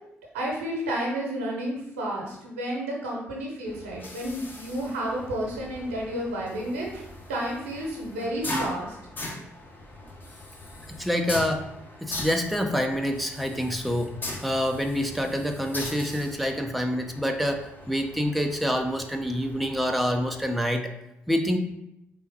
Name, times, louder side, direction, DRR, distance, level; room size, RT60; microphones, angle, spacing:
voice 1, 0.3-9.0, right 1 dB, 80° right, -2 dB, 0.9 m, -31 dB
sound 1, 3.6-20.5, left 1 dB, 30° left, 0.9 m, -40 dB
voice 2, 10.9-11.7 12.0-14.2 14.4-20.9 21.3-21.6, equal, ahead, 4 dB, 0.5 m, -27 dB
4.4 x 3.4 x 2.7 m, 0.83 s
figure-of-eight pair, 45°, 7 cm